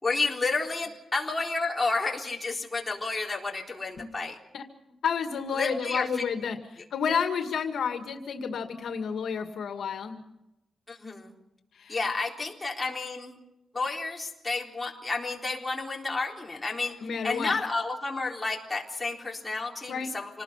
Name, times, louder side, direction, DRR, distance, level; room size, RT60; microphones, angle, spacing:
voice 1, 0.0-4.4 5.5-6.2 10.9-11.3 11.9-13.4 13.7-17.0 17.2-20.4, left 3 dB, 20° left, -1 dB, 3.9 m, -31 dB
voice 2, 5.0-10.2 11.8-12.0 17.0-17.5 19.9-20.1, left 6 dB, 75° left, 5 dB, 2.1 m, -30 dB
27.0 x 19.5 x 5.8 m, 0.90 s
wide cardioid pair, 125°, 0 cm